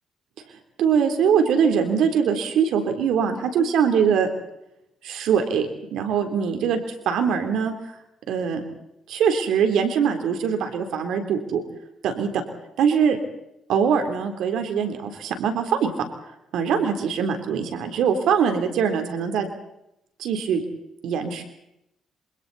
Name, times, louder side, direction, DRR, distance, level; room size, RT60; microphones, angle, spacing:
voice 1, 0.8-4.3 5.0-6.8 7.1-7.7 8.3-8.6 9.1-11.6 12.0-12.3 12.8-13.2 13.7-15.9 16.5-19.5 20.2-20.6 21.0-21.4, right 7 dB, 80° right, 6 dB, 3.5 m, -22 dB
27.5 x 26.0 x 4.2 m, 0.83 s
cardioid pair, 90°, 0 cm